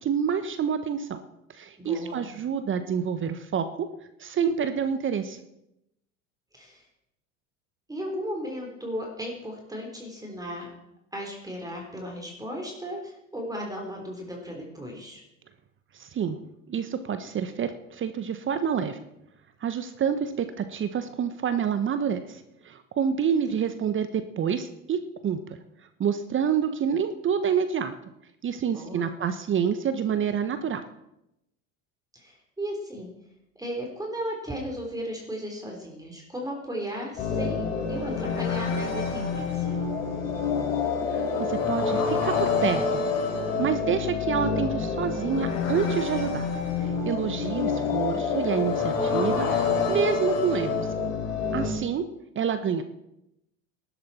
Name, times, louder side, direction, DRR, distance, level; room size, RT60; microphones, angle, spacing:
voice 1, 0.0-1.2 1.5-3.9 4.2-5.4 15.9-16.4 16.7-19.0 19.6-25.6 26.0-27.9 28.4-30.8 41.1-43.0 43.6-46.5 46.8-50.8 51.5-52.0 52.3-52.8, right 7 dB, 30° right, 10 dB, 1.1 m, -28 dB
voice 2, 1.8-2.3 6.5-6.8 7.9-10.7 11.1-15.2 28.7-29.1 32.2-33.1 33.6-37.6 37.9-39.8, equal, 10° right, 0 dB, 3.8 m, -35 dB
sound 1, 37.2-51.7, left 5 dB, 75° left, 5.0 m, -27 dB
19.5 x 11.0 x 4.3 m, 0.84 s
hypercardioid pair, 80°, 40 cm